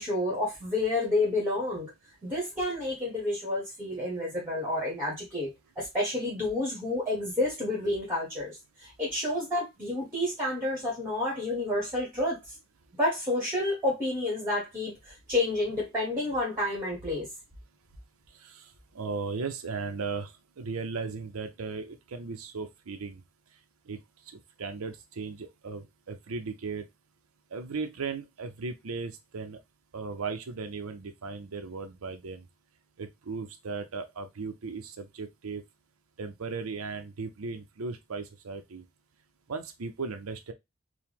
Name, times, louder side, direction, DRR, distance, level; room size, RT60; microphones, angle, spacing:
voice 1, 0.0-1.9 2.2-5.5 5.7-12.4 13.0-17.3, left 2 dB, 10° right, 1.5 m, -30 dB
voice 2, 18.9-23.2 23.9-24.0 24.6-26.9 27.5-29.6 29.9-32.4 33.0-35.6 36.2-38.8 39.5-40.5, right 4 dB, 80° right, 0.6 m, -36 dB
4.7 x 2.2 x 3.5 m
head